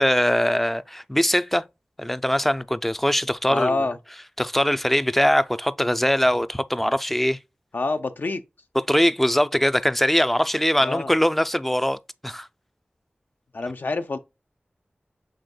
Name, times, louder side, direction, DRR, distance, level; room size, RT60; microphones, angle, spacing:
voice 1, 0.0-1.6 2.0-3.8 4.4-7.4 8.9-12.0 12.2-12.5, equal, 5° left, 0.4 m, -21 dB
voice 2, 3.5-4.0 7.7-8.4 10.8-11.1 13.5-14.2, left 3 dB, 65° left, 0.5 m, -26 dB
6.6 x 3.5 x 2.2 m
wide cardioid pair, 50°, 4 cm